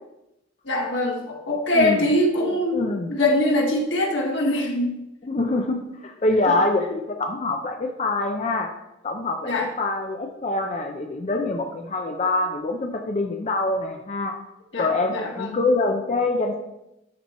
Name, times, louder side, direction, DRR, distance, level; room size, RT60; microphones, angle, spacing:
voice 1, 0.6-5.0 6.5-6.6 9.4-9.7 14.7-15.6, left 1 dB, 85° left, 0 dB, 1.5 m, -23 dB
voice 2, 2.7-3.1 5.2-8.7 9.0-14.3 14.8-16.6, left 2 dB, 35° left, 3 dB, 0.5 m, -25 dB
12.5 x 4.2 x 3.0 m, 0.89 s
head